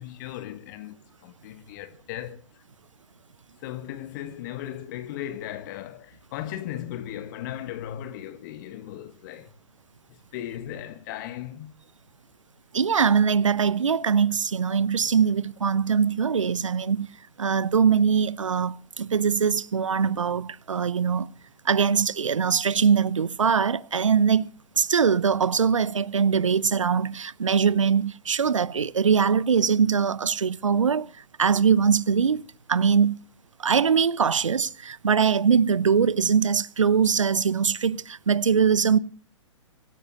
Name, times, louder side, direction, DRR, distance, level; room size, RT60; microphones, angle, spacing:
voice 1, 0.0-2.6 3.6-9.5 10.1-11.7, left 12 dB, 35° left, 1.1 m, -37 dB
voice 2, 12.7-17.1 17.4-21.3 21.6-24.5 24.8-31.1 31.4-32.4 32.7-33.2 33.6-39.0, right 6 dB, 70° right, 0.7 m, -22 dB
25.5 x 15.5 x 2.6 m
figure-of-eight pair, 115°, 17 cm